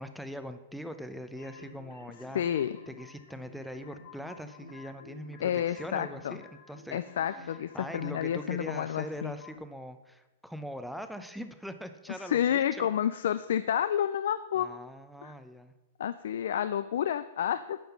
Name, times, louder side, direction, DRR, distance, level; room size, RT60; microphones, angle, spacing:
voice 1, 0.0-2.4 2.9-7.0 7.4-12.9 14.6-15.7, equal, ahead, 9 dB, 0.6 m, -42 dB
sound 1, 1.4-9.6, left 4 dB, 60° left, 2.1 m, -52 dB
voice 2, 2.3-2.8 5.4-6.4 6.9-9.3 12.2-14.7 15.2-15.3 16.0-17.8, left 10 dB, 75° left, 13 dB, 0.3 m, -30 dB
9.2 x 5.4 x 5.9 m, 1.1 s
hypercardioid pair, 140°, 0 cm